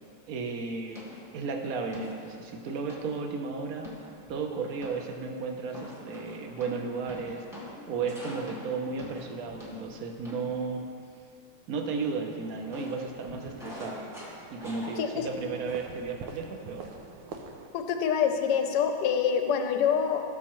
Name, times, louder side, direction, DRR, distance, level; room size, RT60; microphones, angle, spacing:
voice 1, 0.3-1.1 1.3-3.9 4.3-7.5 7.9-10.9 11.7-14.1 14.5-16.9, right 4 dB, 60° right, 3 dB, 1.0 m, -34 dB
sound 1, 0.9-1.4 1.9-2.3 2.9-3.2 3.8-4.4 4.8-5.2 5.7-10.7 12.7-15.4 15.7-16.0, left 1 dB, ahead, 1.2 m, -45 dB
sound 2, 11.8-17.7, right 4 dB, 85° right, 1.7 m, -47 dB
voice 2, 17.7-20.2, left 7 dB, 65° left, 6 dB, 1.1 m, -26 dB
16.0 x 6.6 x 3.1 m, 2.4 s
omnidirectional pair, 2.4 m